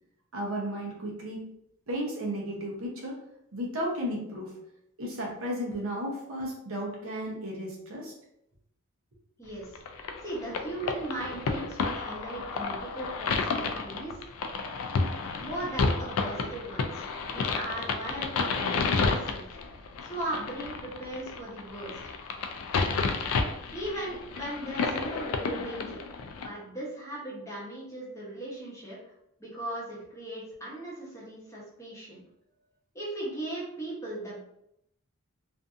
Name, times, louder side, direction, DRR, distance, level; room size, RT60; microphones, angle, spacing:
voice 1, 0.3-1.5 1.9-3.2 3.5-4.6 5.0-8.1 15.4-15.5, equal, 75° right, -2 dB, 0.8 m, -34 dB
voice 2, 9.4-9.8 10.2-14.2 15.4-19.4 20.0-22.0 23.7-26.0 26.4-29.1 29.4-32.2 32.9-34.4, right 1 dB, 15° left, -6 dB, 0.8 m, -38 dB
sound 1, 9.7-26.5, left 4 dB, 85° left, 0.3 m, -31 dB
2.5 x 2.5 x 2.4 m, 0.77 s
head